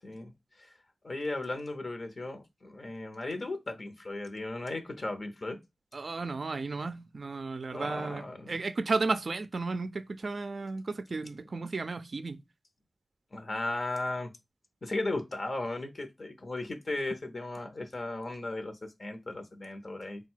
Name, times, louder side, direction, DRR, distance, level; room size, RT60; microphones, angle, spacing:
voice 1, 1.0-5.6 7.7-8.6 13.3-14.3 14.8-20.2, left 2 dB, 55° left, 0.7 m, -36 dB
voice 2, 5.9-12.4, right 3 dB, 60° right, 0.3 m, -33 dB
4.0 x 2.2 x 4.4 m
cardioid pair, 55°, 0 cm